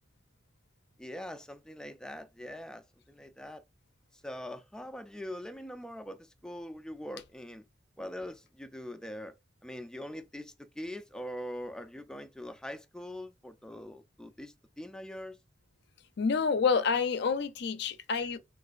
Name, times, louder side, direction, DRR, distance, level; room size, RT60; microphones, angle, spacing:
voice 1, 1.0-3.6 4.2-7.6 8.0-9.3 9.6-15.4, left 1 dB, 5° left, 0.3 m, -42 dB
voice 2, 16.2-18.4, left 5 dB, 65° left, 0.5 m, -28 dB
3.9 x 2.5 x 2.4 m
head